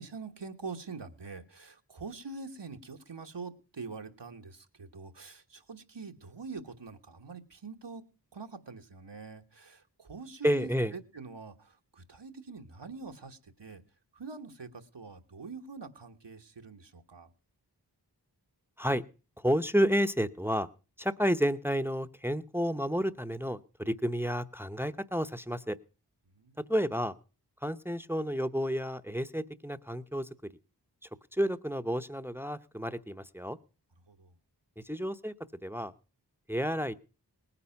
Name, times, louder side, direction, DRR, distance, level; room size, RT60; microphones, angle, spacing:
voice 1, 0.0-8.0 8.3-13.8 14.1-17.3 26.3-26.6 34.1-34.3, right 4 dB, 85° right, 5 dB, 1.4 m, -45 dB
voice 2, 10.4-10.9 18.8-19.0 19.4-20.7 21.0-25.8 26.6-27.2 27.6-30.3 31.3-33.6 34.8-35.3 35.6-35.9 36.5-36.9, equal, 5° right, 11 dB, 0.8 m, -30 dB
19.0 x 9.7 x 5.8 m, 0.35 s
wide cardioid pair, 45°, 41 cm